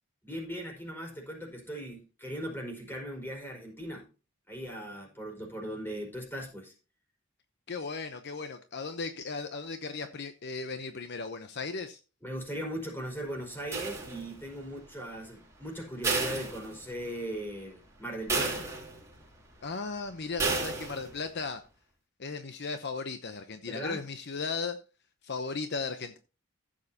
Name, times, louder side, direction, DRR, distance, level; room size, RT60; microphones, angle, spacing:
voice 1, 0.2-4.1 4.5-6.7 12.2-18.7 23.6-24.0, equal, 10° left, 4.8 m, -39 dB
voice 2, 7.7-12.0 19.6-21.6 22.2-24.8 25.2-26.2, left 4 dB, 60° left, 0.8 m, -36 dB
sound 1, 13.7-14.5 16.0-17.2 17.6-17.7 18.3-19.2 20.4-21.2, right 3 dB, 15° right, 3.1 m, -32 dB
15.0 x 7.5 x 2.8 m
head